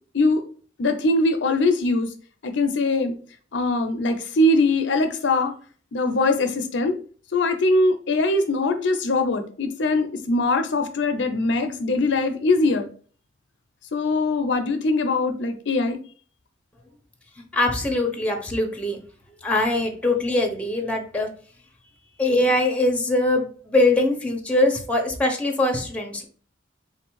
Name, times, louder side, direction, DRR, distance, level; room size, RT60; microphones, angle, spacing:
voice 1, 0.8-2.1 2.4-3.1 3.5-5.5 5.9-7.0 7.3-12.9 13.9-16.0, left 2 dB, 65° left, 7 dB, 0.5 m, -22 dB
voice 2, 17.5-19.0 19.4-21.3 22.2-26.2, left 2 dB, 5° left, 2 dB, 0.7 m, -22 dB
3.7 x 2.6 x 4.5 m, 0.42 s
head